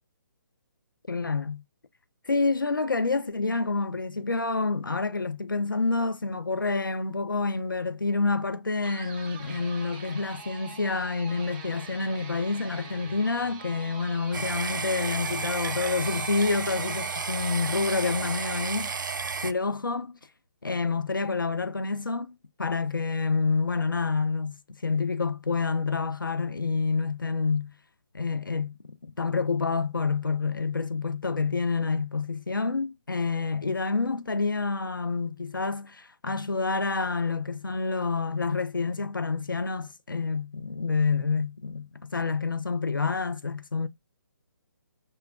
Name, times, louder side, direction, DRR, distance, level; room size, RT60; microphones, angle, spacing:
voice 1, 1.1-1.6 2.3-19.1 19.4-20.1 20.6-27.7 28.1-43.9, left 4 dB, 85° left, 0.5 m, -28 dB
sound 1, 8.8-19.0, right 5 dB, 30° right, 0.8 m, -44 dB
sound 2, 14.3-19.5, right 5 dB, 70° right, 0.4 m, -32 dB
6.1 x 2.2 x 2.3 m
figure-of-eight pair, 140°, 11 cm